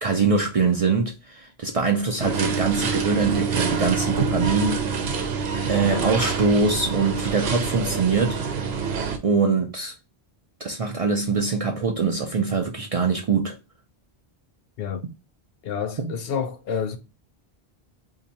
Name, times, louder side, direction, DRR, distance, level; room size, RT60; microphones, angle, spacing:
voice 1, 0.0-4.8 5.7-8.4 9.2-9.9 10.6-13.5 16.0-16.1, right 4 dB, 50° right, 0.4 m, -23 dB
sound 1, 2.2-9.2, right 5 dB, 80° right, 0.9 m, -26 dB
voice 2, 15.6-17.0, left 7 dB, 70° left, 0.8 m, -28 dB
2.8 x 2.6 x 4.0 m
omnidirectional pair, 1.0 m